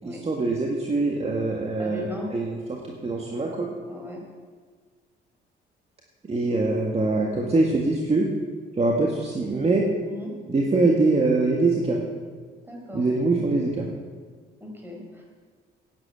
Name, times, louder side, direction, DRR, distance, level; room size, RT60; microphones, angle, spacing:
voice 1, 0.0-3.7 6.3-8.3 8.7-9.9 10.5-12.0 12.9-13.9, right 3 dB, 30° right, 0 dB, 1.8 m, -23 dB
voice 2, 1.8-2.3 3.9-4.2 6.5-6.6 10.0-10.3 12.6-13.0 14.6-15.2, left 1 dB, 10° right, -1 dB, 4.9 m, -38 dB
10.5 x 9.6 x 8.4 m, 1.6 s
cardioid pair, 90°, 20 cm